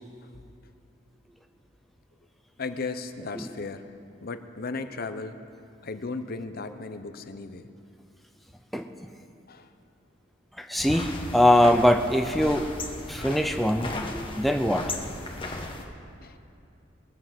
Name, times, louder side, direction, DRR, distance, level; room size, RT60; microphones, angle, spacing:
voice 1, 2.6-3.9 4.2-5.4 5.8-7.7 9.5-9.7 15.6-15.7 16.2-16.4, left 3 dB, 50° left, 10 dB, 0.7 m, -35 dB
voice 2, 10.6-12.7 13.1-14.9, left 1 dB, ahead, 5 dB, 0.5 m, -22 dB
sound 1, 10.8-15.8, left 2 dB, 25° left, 1.3 m, -35 dB
22.0 x 7.6 x 5.8 m, 2.6 s
head